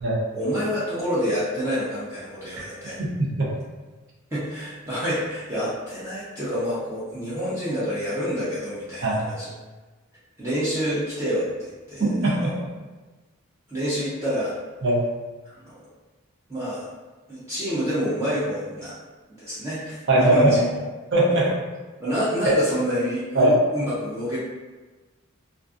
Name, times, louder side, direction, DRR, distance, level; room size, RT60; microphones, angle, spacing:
voice 1, 0.3-3.0 4.3-9.5 10.4-12.6 13.7-14.5 15.6-15.7 16.5-16.9 17.3-18.9 19.4-20.6 22.0-24.4, equal, 15° right, -11 dB, 0.5 m, -28 dB
voice 2, 3.0-3.5 9.0-9.2 12.0-12.5 14.8-15.0 20.1-20.5 21.1-21.5 22.5-22.6 23.3-23.5, right 1 dB, 55° right, -5 dB, 0.6 m, -20 dB
2.4 x 2.4 x 2.4 m, 1.3 s
head